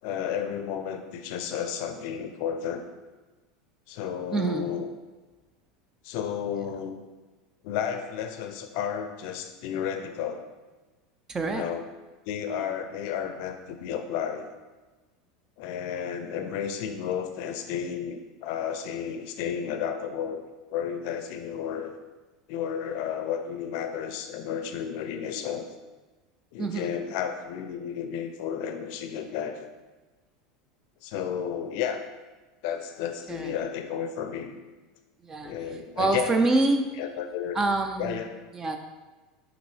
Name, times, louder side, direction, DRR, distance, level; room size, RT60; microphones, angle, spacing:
voice 1, 0.0-2.8 3.9-4.9 6.0-7.0 7.6-10.4 11.4-11.8 12.3-14.5 15.6-21.9 22.5-25.6 26.5-29.7 31.0-32.0 32.6-34.5 35.4-36.6 37.0-37.6 38.0-38.4, left 8 dB, 65° left, 7 dB, 0.5 m, -32 dB
voice 2, 4.3-4.6 11.3-11.6 26.6-26.9 33.3-33.5 35.2-35.6 36.0-36.9 37.5-38.2 38.5-38.8, right 2 dB, 25° right, 6 dB, 0.4 m, -26 dB
5.8 x 2.6 x 3.2 m, 1.2 s
hypercardioid pair, 100°, 2 cm